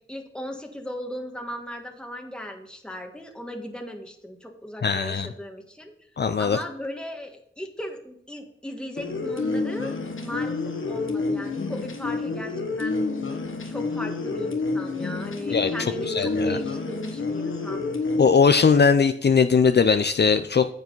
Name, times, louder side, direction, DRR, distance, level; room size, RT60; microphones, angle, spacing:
voice 1, 0.1-5.9 6.4-9.9 10.2-13.0 13.6-17.8, equal, 5° left, 3 dB, 1.5 m, -36 dB
voice 2, 4.8-5.3 6.2-6.6 15.5-16.6 18.2-20.7, left 5 dB, 55° left, 9 dB, 0.5 m, -20 dB
sound 1, 9.0-18.3, left 3 dB, 75° left, 1.3 m, -29 dB
9.6 x 7.3 x 4.0 m, 0.71 s
cardioid pair, 55°, 21 cm